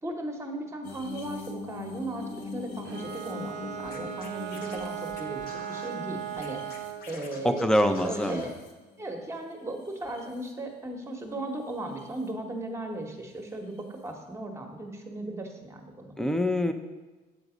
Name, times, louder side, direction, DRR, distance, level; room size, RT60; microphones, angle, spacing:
voice 1, 0.0-7.7 8.0-8.5 9.0-16.1, right 1 dB, 15° right, 3 dB, 1.0 m, -37 dB
sound 1, 0.8-9.2 9.7-10.5 11.7-12.0 13.8-13.9, left 3 dB, 80° left, 1.0 m, -43 dB
Bowed string instrument, 2.8-7.1, right 10 dB, 85° right, 0.5 m, -37 dB
Scratching (performance technique), 3.8-5.9 6.4-8.6, left 3 dB, 60° left, 0.9 m, -48 dB
voice 2, 7.4-8.5 16.2-16.7, left 1 dB, 5° left, 7 dB, 0.5 m, -25 dB
8.1 x 4.0 x 4.9 m, 1.2 s
cardioid pair, 110°, 17 cm